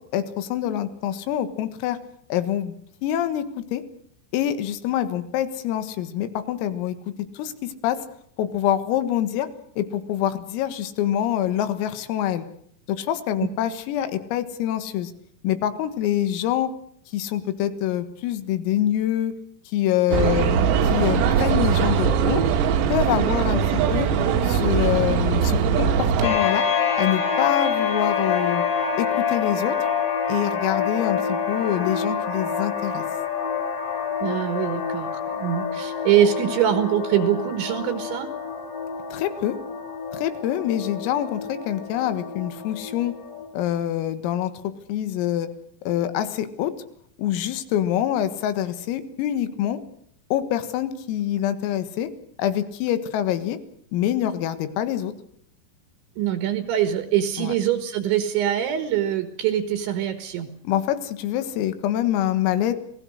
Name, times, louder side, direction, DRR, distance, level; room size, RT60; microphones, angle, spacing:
voice 1, 0.1-2.0 2.3-2.8 3.0-3.8 4.3-8.0 8.4-9.5 9.8-12.5 12.9-15.1 15.4-16.7 17.1-19.3 19.7-20.5 20.8-22.4 22.9-23.6 23.9-24.1 24.4-26.7 27.0-28.6 29.0-29.8 30.3-33.0 39.1-39.6 40.1-43.1 43.5-45.5 45.9-46.7 47.2-49.8 50.3-52.1 52.4-53.6 53.9-55.1 57.4-57.5 60.7-62.7, left 11 dB, 85° left, 11 dB, 4.2 m, -25 dB
sound 1, 20.1-26.3, right 7 dB, 90° right, 4.4 m, -21 dB
sound 2, 26.2-43.5, left 6 dB, 60° left, 5.8 m, -27 dB
voice 2, 34.2-38.3 56.2-60.5, right 10 dB, 70° right, 9 dB, 3.6 m, -23 dB
30.0 x 19.5 x 6.5 m, 0.67 s
omnidirectional pair, 5.9 m